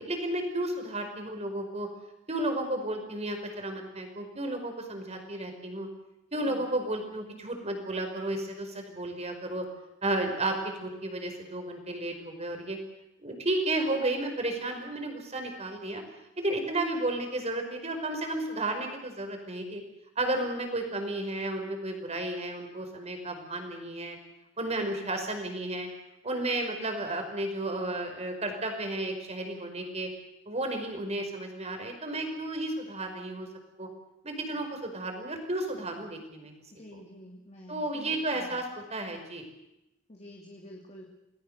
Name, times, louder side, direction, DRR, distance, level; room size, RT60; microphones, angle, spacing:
voice 1, 0.0-1.9 2.3-5.9 6.3-9.6 10.0-12.8 13.2-16.0 16.4-19.8 20.2-24.2 24.6-25.9 26.2-30.1 30.5-33.5 33.8-33.9 34.2-36.5 36.9-37.0 37.7-39.4, right 1 dB, 35° right, 5 dB, 5.1 m, -33 dB
voice 2, 36.7-38.6 40.1-41.1, left 1 dB, 35° left, -1 dB, 2.8 m, -49 dB
28.5 x 20.0 x 6.8 m, 0.89 s
head